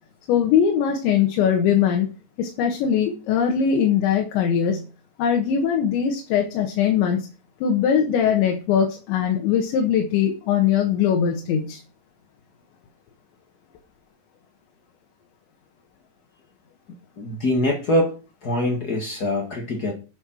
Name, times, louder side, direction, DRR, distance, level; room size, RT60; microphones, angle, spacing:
voice 1, 0.3-2.1 2.4-4.8 5.2-7.3 7.6-11.8, left 8 dB, 85° left, 2 dB, 3.9 m, -21 dB
voice 2, 17.2-18.1 18.4-19.9, left 1 dB, 55° left, 1 dB, 1.1 m, -23 dB
11.5 x 7.6 x 6.3 m, 0.35 s
omnidirectional pair, 5.1 m